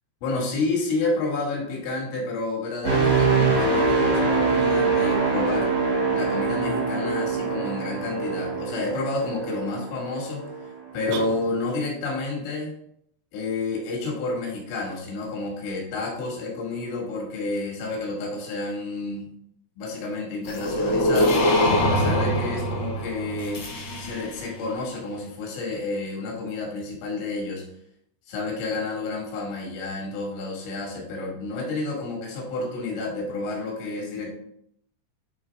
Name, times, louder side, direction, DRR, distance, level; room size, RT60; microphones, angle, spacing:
voice 1, 0.2-5.7 6.1-12.7 13.3-19.3 19.8-21.5 21.8-23.6 24.0-27.6 28.3-34.3, left 3 dB, 90° left, -2 dB, 4.5 m, -30 dB
sound 1, 2.8-10.7 11.1-11.4, right 4 dB, 65° right, 1.0 m, -24 dB
sound 2, 11.1-12.0, right 6 dB, 85° right, 2.7 m, -35 dB
sound 3, 20.4-24.5, equal, 70° left, 1.6 m, -23 dB
10.0 x 3.9 x 3.6 m, 0.72 s
omnidirectional pair, 5.5 m